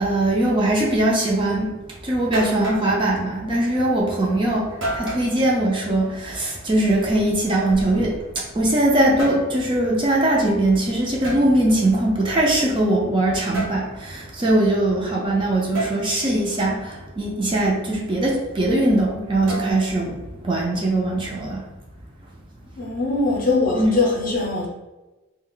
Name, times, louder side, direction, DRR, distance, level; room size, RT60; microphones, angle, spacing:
voice 1, 0.0-1.7 2.0-4.7 4.9-8.1 8.6-20.1 20.4-21.6 23.8-24.0, right 1 dB, 25° right, -3 dB, 0.4 m, -21 dB
sound 1, 1.8-1.9 2.3-2.9 4.8-5.3 7.0-8.4 9.0-9.5 11.2-11.4 13.5-13.8 15.7-16.0 19.5-20.0, right 1 dB, 65° right, 0.9 m, -30 dB
voice 2, 22.8-24.7, left 3 dB, 40° left, -2 dB, 0.7 m, -21 dB
2.4 x 2.1 x 3.7 m, 1.1 s
head